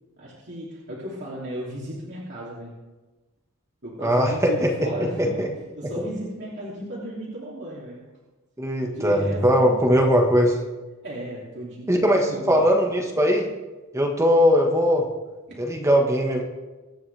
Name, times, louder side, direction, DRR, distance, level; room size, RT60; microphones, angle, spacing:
voice 1, 0.2-2.7 3.8-8.0 8.8-9.8 11.0-12.6 15.5-15.6, equal, 55° right, -6 dB, 3.0 m, -35 dB
voice 2, 4.0-4.9 5.2-5.5 5.8-6.1 8.6-10.6 11.9-13.5 13.9-15.1 15.6-16.4, equal, 15° right, 1 dB, 1.5 m, -20 dB
24.0 x 9.4 x 3.5 m, 1.2 s
head